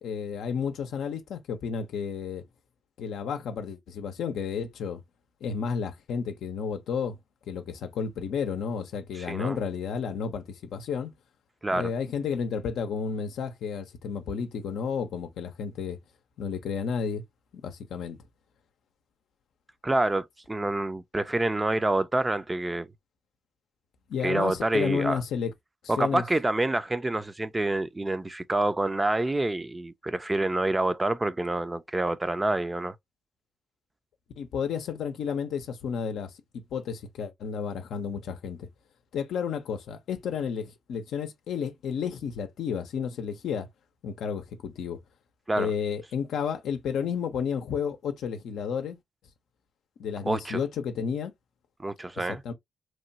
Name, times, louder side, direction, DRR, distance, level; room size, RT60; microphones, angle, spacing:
voice 1, 0.0-2.4 3.0-5.0 5.4-7.2 7.5-11.1 11.7-16.0 16.4-17.2 17.6-18.2 24.1-25.5 26.0-26.2 34.4-38.7 39.1-43.7 44.0-45.0 45.6-49.0 50.0-51.3 52.3-52.5, left 6 dB, 80° left, 0.5 m, -32 dB
voice 2, 9.1-9.6 11.6-11.9 19.8-22.9 24.2-25.2 25.9-33.0 45.5-45.7 50.3-50.6 51.8-52.4, right 2 dB, 20° right, 0.4 m, -27 dB
3.0 x 2.2 x 2.6 m
supercardioid pair, 60°, 0 cm